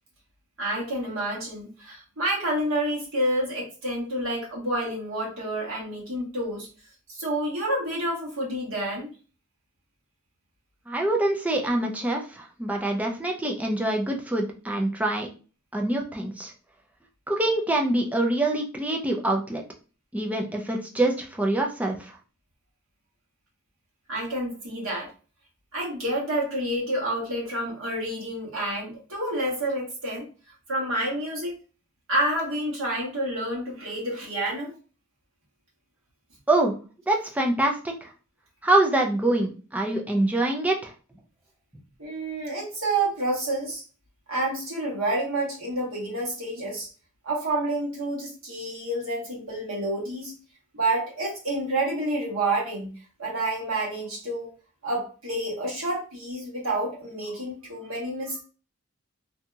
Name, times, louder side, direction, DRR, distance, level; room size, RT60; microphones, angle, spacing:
voice 1, 0.6-6.7 7.1-9.1 24.1-25.1 25.7-30.3 30.7-31.6 32.1-34.7 42.0-43.8 44.3-46.9 47.2-50.3 50.7-52.9 53.2-54.5 54.8-58.4, right 1 dB, 85° right, -4 dB, 1.3 m, -29 dB
voice 2, 10.9-15.3 15.7-16.5 17.3-19.6 20.1-22.2 36.5-36.8 37.1-38.1 38.6-40.9, right 2 dB, 5° right, 1 dB, 0.4 m, -25 dB
2.8 x 2.6 x 2.3 m, 0.36 s
head